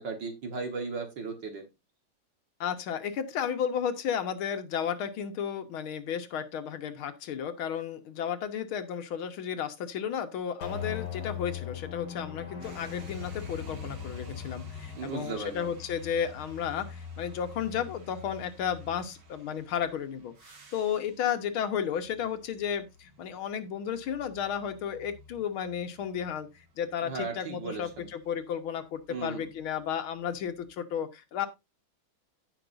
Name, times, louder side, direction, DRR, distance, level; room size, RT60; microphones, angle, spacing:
voice 1, 0.0-1.7 15.0-15.7 27.0-28.1 29.1-29.4, right 4 dB, 60° right, 2.1 m, -36 dB
voice 2, 2.6-26.5 26.8-31.5, left 8 dB, 80° left, 2.0 m, -33 dB
sound 1, 10.6-17.1, left 10 dB, 55° left, 3.1 m, -41 dB
sound 2, 12.6-28.6 29.4-30.7, left 3 dB, 75° right, 2.9 m, -48 dB
16.5 x 6.0 x 2.6 m
omnidirectional pair, 2.3 m